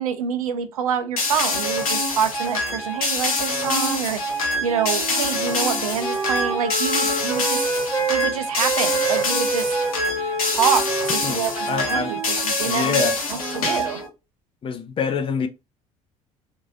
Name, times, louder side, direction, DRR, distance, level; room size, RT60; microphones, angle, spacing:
voice 1, 0.0-7.6 8.1-9.7 10.5-14.0, right 7 dB, 80° right, 0.4 m, -26 dB
sound 1, 1.2-14.1, left 2 dB, 75° left, 0.8 m, -25 dB
Wind instrument woodwind instrument, 3.4-8.3 8.6-13.9, right 3 dB, 15° left, 1.3 m, -29 dB
voice 2, 11.7-12.2 12.7-13.1 14.6-15.5, left 6 dB, 30° left, 0.5 m, -25 dB
3.0 x 2.6 x 2.4 m
figure-of-eight pair, 60°, 18 cm